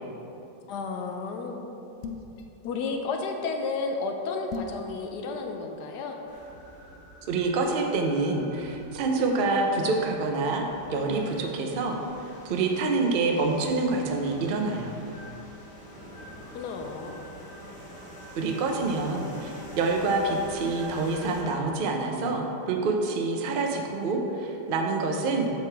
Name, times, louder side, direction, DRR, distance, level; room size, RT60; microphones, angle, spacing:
voice 1, 0.7-1.6 2.6-6.2 16.5-17.2, left 4 dB, 75° left, 3 dB, 1.1 m, -32 dB
sound 1, 2.0-2.4 4.5-4.8, left 6 dB, 90° left, 0.6 m, -36 dB
sound 2, 6.3-21.4, equal, 15° left, 1.1 m, -47 dB
voice 2, 7.3-12.0 12.4-15.0 18.4-25.5, right 3 dB, 75° right, 2 dB, 0.4 m, -27 dB
7.8 x 6.6 x 3.4 m, 2.9 s
omnidirectional pair, 1.9 m